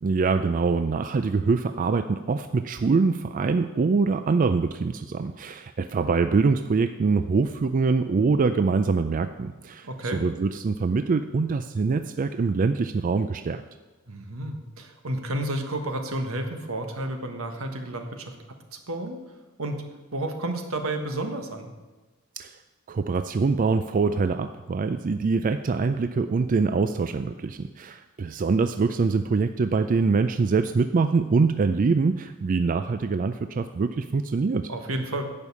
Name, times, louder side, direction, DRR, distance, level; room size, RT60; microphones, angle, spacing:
voice 1, 0.0-13.6 22.4-22.6 22.9-34.7, right 4 dB, 40° right, 10 dB, 0.4 m, -24 dB
voice 2, 9.8-10.2 14.1-18.4 18.7-19.2 19.6-19.8 20.1-21.7 34.7-35.2, right 1 dB, 80° right, 5 dB, 1.4 m, -31 dB
11.0 x 5.3 x 8.4 m, 1.2 s
head